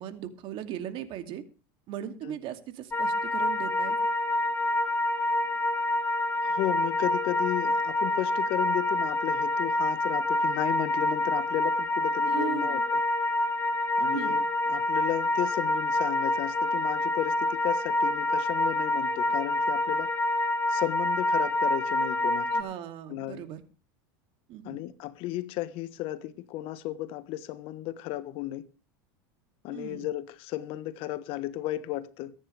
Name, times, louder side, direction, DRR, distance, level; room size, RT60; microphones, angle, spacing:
voice 1, 0.0-1.4 1.9-4.0 12.3-12.8 14.1-14.4 22.5-23.6 24.5-24.8 29.7-30.1, right 10 dB, 50° right, 2.6 m, -38 dB
sound 1, 2.9-22.6, left 1 dB, 20° left, 1.9 m, -27 dB
voice 2, 6.4-13.0 14.0-20.1 20.7-22.5 23.1-23.4 24.6-28.7 29.6-32.3, left 15 dB, 55° left, 1.3 m, -34 dB
23.5 x 9.8 x 3.4 m
supercardioid pair, 110°, 11 cm